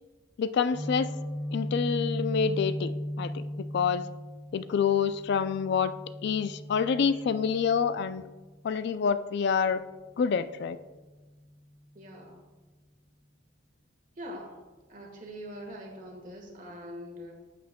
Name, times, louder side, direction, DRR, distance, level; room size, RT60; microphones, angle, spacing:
voice 1, 0.4-1.1 1.5-3.4 3.7-4.1 4.5-5.9 6.2-8.2 8.6-9.8 10.2-10.8, left 6 dB, 55° left, 13 dB, 0.3 m, -27 dB
Guitar, 0.7-8.6, equal, 20° left, 1.8 m, -37 dB
voice 2, 11.9-12.4 14.2-14.6 14.9-17.3, equal, 40° right, 1 dB, 1.4 m, -43 dB
8.6 x 8.2 x 2.2 m, 1.3 s
head